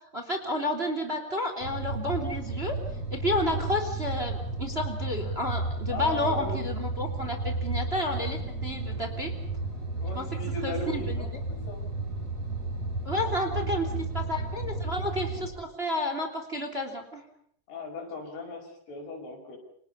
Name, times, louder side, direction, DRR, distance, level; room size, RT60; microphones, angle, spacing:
voice 1, 0.1-2.8 3.1-9.3 10.1-10.3 10.6-11.2 13.0-17.2, left 1 dB, 15° right, 6 dB, 2.8 m, -31 dB
sound 1, 1.6-15.5, right 2 dB, 35° right, 8.6 m, -33 dB
voice 2, 5.9-6.6 10.0-11.8 13.5-14.1 14.7-14.8 17.7-19.6, left 3 dB, 75° left, 1 dB, 7.6 m, -38 dB
29.5 x 27.0 x 5.6 m, 0.64 s
omnidirectional pair, 4.6 m